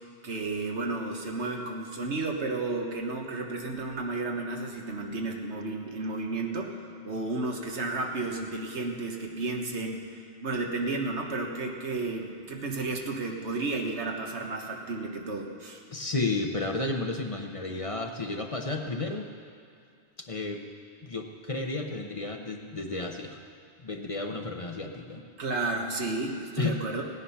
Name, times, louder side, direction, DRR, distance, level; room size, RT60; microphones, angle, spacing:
voice 1, 0.2-15.8 25.4-27.0, right 3 dB, 90° right, 1 dB, 1.7 m, -32 dB
voice 2, 15.9-19.3 20.2-20.6 21.0-23.4 23.8-25.2 26.6-26.8, left 3 dB, 35° left, 4 dB, 0.9 m, -32 dB
17.0 x 9.9 x 5.7 m, 2.4 s
omnidirectional pair, 1.1 m